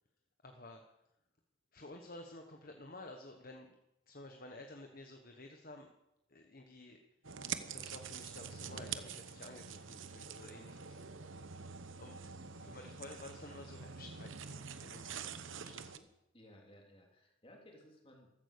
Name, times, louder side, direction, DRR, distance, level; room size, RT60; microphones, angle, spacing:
voice 1, 0.4-0.8 1.7-3.8 4.1-5.9 6.3-7.0 7.7-11.0 12.0-12.2 12.6-16.1, left 2 dB, 40° left, 4 dB, 1.2 m, -52 dB
sound 1, 7.2-16.0, right 7 dB, 65° right, 1.0 m, -46 dB
voice 2, 12.1-13.0 16.3-18.3, equal, 25° left, 1 dB, 3.3 m, -60 dB
15.0 x 14.0 x 6.8 m, 0.89 s
head